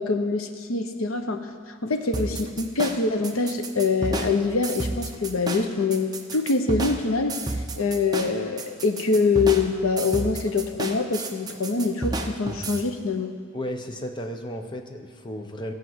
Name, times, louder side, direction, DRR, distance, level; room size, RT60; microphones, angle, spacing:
voice 1, 0.0-1.5 1.8-7.4 7.8-13.3, left 4 dB, 85° left, 7 dB, 0.8 m, -24 dB
sound 1, 2.1-12.8, right 2 dB, 20° right, 0.7 m, -31 dB
voice 2, 13.5-15.7, equal, 20° left, 4 dB, 0.8 m, -34 dB
15.0 x 5.2 x 7.8 m, 2.1 s
head